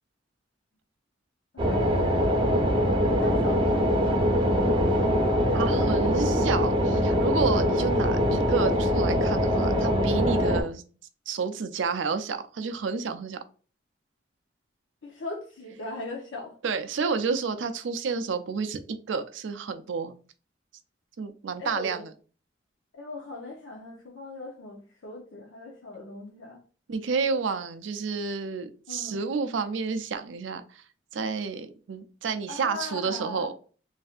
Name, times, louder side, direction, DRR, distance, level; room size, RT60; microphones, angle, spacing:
voice 1, 1.5-2.4 2.7-3.8 5.7-6.7 15.0-16.5 21.6-22.0 22.9-26.6 28.9-29.2 32.5-33.5, left 2 dB, 85° left, 0.7 m, -39 dB
sound 1, 1.6-10.6, equal, 25° right, 0.7 m, -23 dB
voice 2, 5.5-10.8 11.3-13.4 16.6-18.8 19.1-20.1 21.2-22.1 26.9-30.8 31.1-33.5, right 5 dB, 75° right, 0.4 m, -30 dB
3.2 x 2.6 x 2.4 m
head